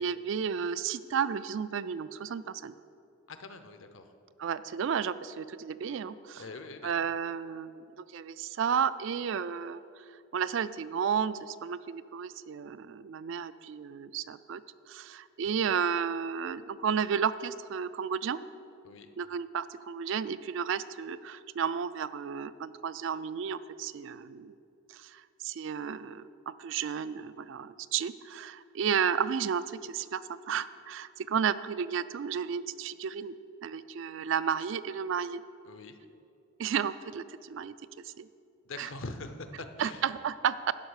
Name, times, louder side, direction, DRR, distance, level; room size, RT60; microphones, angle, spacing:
voice 1, 0.0-2.8 4.4-6.4 6.8-7.8 8.1-9.8 10.3-14.6 14.9-18.4 19.2-24.5 24.9-33.3 33.6-35.4 36.6-37.7 38.0-38.3 38.8-38.9 39.8-40.7, right 7 dB, 60° right, 15 dB, 0.3 m, -32 dB
voice 2, 3.3-4.1 6.4-6.9 15.6-15.7 18.8-19.1 35.6-36.0 38.7-40.0, left 3 dB, 60° left, 8 dB, 0.7 m, -43 dB
11.0 x 5.4 x 6.4 m, 2.6 s
head